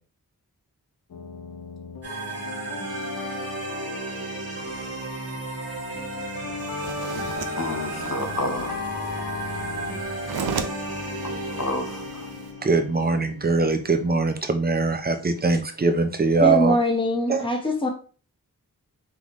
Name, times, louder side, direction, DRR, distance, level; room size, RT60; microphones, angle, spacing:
sound 1, 1.1-13.8, left 6 dB, 65° left, 0.6 m, -37 dB
sound 2, 2.0-12.8, right 3 dB, 40° right, 1.7 m, -34 dB
sound 3, 6.6-12.5, right 6 dB, 80° right, 0.6 m, -37 dB
voice 1, 7.6-8.8 11.4-12.3, left 2 dB, 45° left, 0.9 m, -30 dB
voice 2, 12.6-16.8 17.3-17.4, right 3 dB, 25° right, 0.6 m, -22 dB
voice 3, 16.4-17.9, equal, 15° left, 1.1 m, -23 dB
3.7 x 3.5 x 3.1 m
wide cardioid pair, 60°, 37 cm